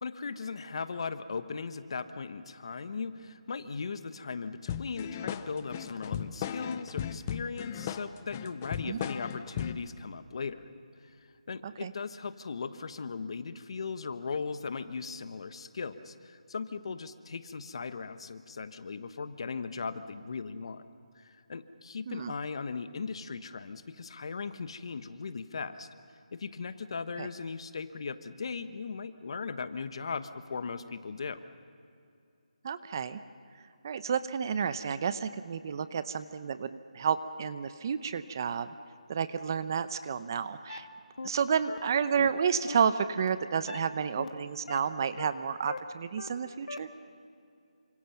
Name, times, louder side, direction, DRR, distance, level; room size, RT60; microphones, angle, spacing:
voice 1, 0.0-10.6 11.0-20.8 21.1-25.9 26.3-31.4, left 5 dB, 45° left, 11 dB, 1.2 m, -38 dB
sound 1, 4.7-9.9, left 9 dB, 20° left, 0.6 m, -37 dB
voice 2, 32.6-33.2 33.8-38.7 39.1-40.9 41.2-46.9, right 7 dB, 30° right, 13 dB, 0.7 m, -31 dB
sound 2, 40.7-40.8 41.2-41.3 41.7-41.8 42.2-42.3 42.7-42.8 43.2-43.3 43.7-43.8 44.2-44.3 44.7-44.8 45.2-45.3 45.7-45.8 46.2-46.3 46.7-46.8, left 3 dB, 80° left, 2.1 m, -39 dB
28.5 x 26.0 x 5.9 m, 2.5 s
figure-of-eight pair, 170°, 4 cm